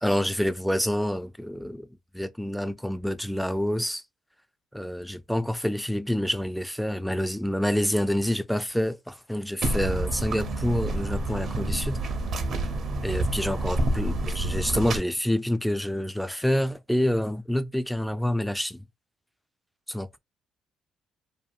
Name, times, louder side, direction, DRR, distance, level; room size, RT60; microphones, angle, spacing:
voice 1, 0.0-1.9 2.1-4.0 4.7-12.0 13.0-18.8 19.9-20.2, equal, ahead, 0.3 m, -27 dB
sound 1, 9.6-15.0, right 2 dB, 60° right, 0.6 m, -28 dB
2.6 x 2.3 x 2.3 m
supercardioid pair, 70°, 0 cm